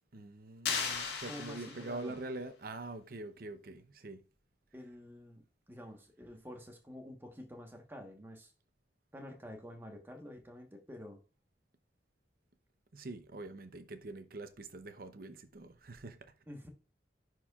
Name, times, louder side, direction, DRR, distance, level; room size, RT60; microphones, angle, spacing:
voice 1, 0.1-4.2 12.9-16.3, right 2 dB, 55° right, 0.7 m, -44 dB
sound 1, 0.6-2.2, left 6 dB, 70° left, 1.7 m, -37 dB
voice 2, 1.3-2.2 4.7-8.5 9.1-11.2 16.5-16.7, left 1 dB, 15° right, 1.2 m, -49 dB
10.0 x 4.6 x 2.4 m
head